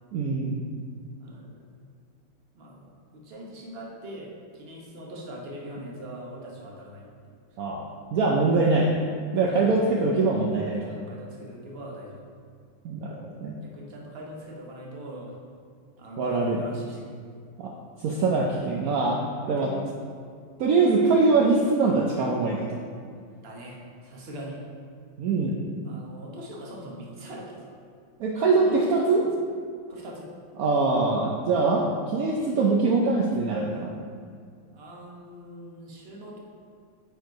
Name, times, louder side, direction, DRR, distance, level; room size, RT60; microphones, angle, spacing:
voice 1, 0.1-0.6 7.6-8.9 9.3-10.9 12.8-13.5 16.2-16.6 17.6-17.7 18.0-19.2 19.5-19.7 20.6-22.8 25.2-25.6 28.2-29.2 30.6-33.9, right 3 dB, 70° right, -1 dB, 0.8 m, -23 dB
voice 2, 1.2-1.6 2.5-7.4 9.4-10.0 10.8-12.2 13.6-15.4 16.0-17.1 19.4-19.8 23.4-24.6 25.8-27.8 28.6-29.3 29.9-30.3 34.7-36.4, right 1 dB, 40° right, -2 dB, 1.0 m, -41 dB
7.8 x 4.5 x 4.6 m, 2.1 s
omnidirectional pair, 2.2 m